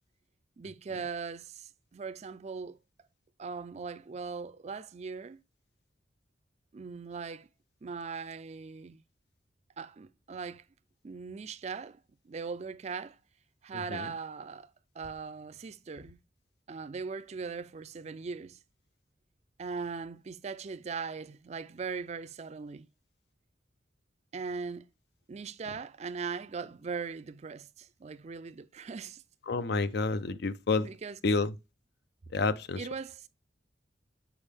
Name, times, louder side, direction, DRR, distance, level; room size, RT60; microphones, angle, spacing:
voice 1, 0.6-2.8 3.4-5.4 6.7-7.5 7.8-9.0 9.8-10.6 11.0-12.0 12.3-13.2 13.6-14.7 15.0-16.2 16.7-18.6 19.6-22.9 24.3-24.9 25.3-29.2 30.8-31.2 32.8-33.3, right 5 dB, 40° right, 0.4 m, -39 dB
voice 2, 29.5-30.9 31.2-31.5 32.3-32.8, left 3 dB, 65° left, 0.5 m, -29 dB
7.1 x 4.5 x 3.4 m
head